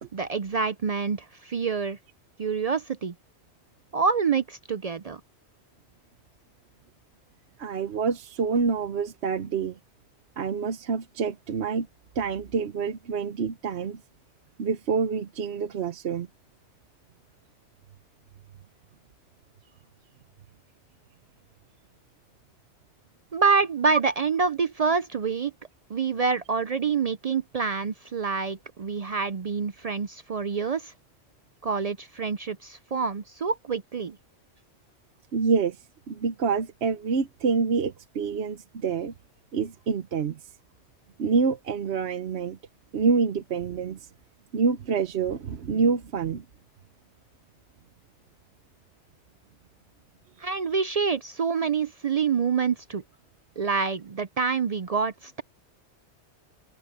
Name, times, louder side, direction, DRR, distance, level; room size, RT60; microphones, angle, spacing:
voice 1, 0.1-2.0 2.4-3.1 3.9-5.2 23.3-25.5 25.9-30.9 31.6-34.2 50.4-53.0 53.6-55.4, right 5 dB, 50° right, 0.4 m, -27 dB
voice 2, 7.6-9.8 10.4-11.9 12.2-14.0 14.6-16.3 35.3-39.1 39.5-40.4 41.2-42.6 42.9-44.1 44.5-46.4, right 5 dB, 65° right, 1.1 m, -27 dB
open air
omnidirectional pair, 1.2 m